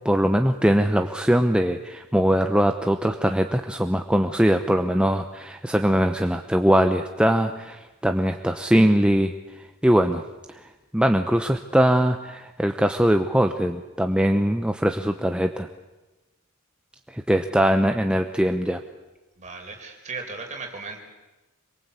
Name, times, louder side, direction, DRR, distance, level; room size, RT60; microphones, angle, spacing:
voice 1, 0.0-10.2 10.5-15.7 17.1-18.8, equal, 5° right, 6 dB, 0.8 m, -21 dB
voice 2, 19.4-21.0, right 4 dB, 35° right, 2 dB, 4.7 m, -36 dB
26.0 x 23.0 x 8.3 m, 1.1 s
head